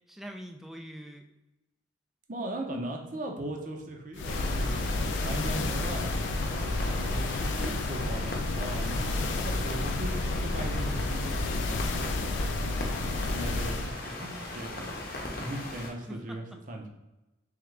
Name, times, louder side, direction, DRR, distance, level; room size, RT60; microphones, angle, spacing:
voice 1, 0.1-1.2 7.0-7.4 10.2-10.5 16.1-16.6, equal, ahead, 4 dB, 0.3 m, -44 dB
voice 2, 2.3-6.1 6.6-12.2 13.0-16.9, right 1 dB, 45° right, 2 dB, 0.7 m, -39 dB
sound 1, 4.2-13.9, left 2 dB, 85° left, 0.4 m, -31 dB
sound 2, 4.2-15.9, left 2 dB, 50° left, 0.7 m, -38 dB
3.6 x 3.5 x 3.3 m, 0.97 s
head